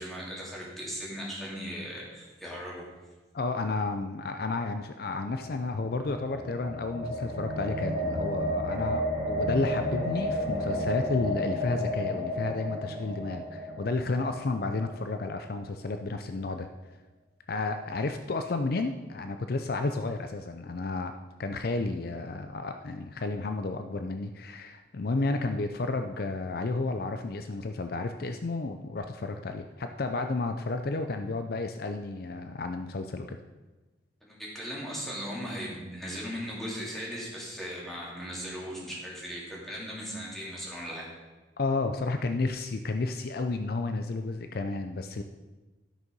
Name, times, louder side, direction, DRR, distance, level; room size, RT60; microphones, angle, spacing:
voice 1, 0.0-2.9 34.2-41.1, equal, ahead, -5 dB, 2.8 m, -38 dB
voice 2, 3.3-16.7 17.5-21.1 21.4-33.4 41.6-45.2, left 3 dB, 55° left, 7 dB, 0.5 m, -32 dB
sound 1, 5.3-15.3, left 1 dB, 35° right, 2.5 m, -32 dB
12.0 x 6.5 x 5.4 m, 1.2 s
head